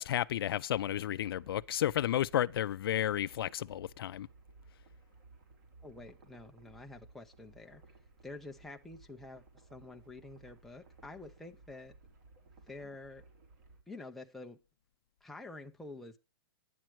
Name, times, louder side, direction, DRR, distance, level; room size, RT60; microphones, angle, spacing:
voice 1, 0.0-4.3, left 11 dB, 70° left, 0.4 m, -32 dB
sound 1, 0.7-13.8, right 3 dB, 50° right, 3.4 m, -59 dB
voice 2, 5.8-7.8 8.2-12.0 12.7-13.2 13.9-14.6 15.2-16.2, left 2 dB, ahead, 0.5 m, -48 dB
10.0 x 8.9 x 4.6 m
hypercardioid pair, 160°, 13 cm